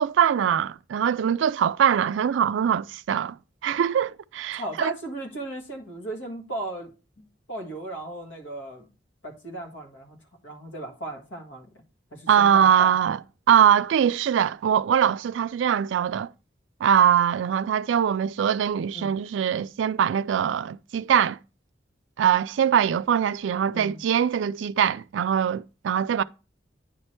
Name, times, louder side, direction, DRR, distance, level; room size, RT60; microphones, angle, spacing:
voice 1, 0.0-3.4 3.6-4.9 12.3-13.2 13.5-16.3 16.8-21.4 22.2-26.2, right 8 dB, 85° right, 0.3 m, -22 dB
voice 2, 4.5-6.9 7.2-8.9 9.2-10.2 10.4-11.7 12.1-12.9 18.9-19.1 23.7-24.0, right 1 dB, 90° left, 1.7 m, -36 dB
9.7 x 3.3 x 4.4 m
head